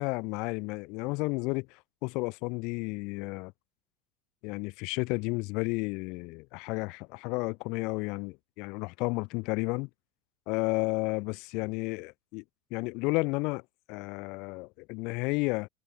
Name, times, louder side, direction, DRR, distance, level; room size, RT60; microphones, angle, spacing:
voice 1, 0.0-3.5 4.4-9.9 10.5-12.4 12.7-13.6 13.9-15.7, left 27 dB, 60° left, 7.5 m, -32 dB
hypercardioid pair, 90°, 0 cm